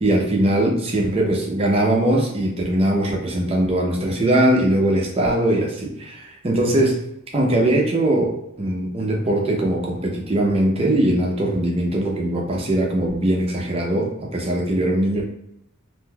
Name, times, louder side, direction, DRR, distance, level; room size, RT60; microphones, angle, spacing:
voice 1, 0.0-7.0 7.3-15.2, right 1 dB, 25° right, -1 dB, 0.6 m, -21 dB
3.6 x 2.6 x 2.2 m, 0.80 s
head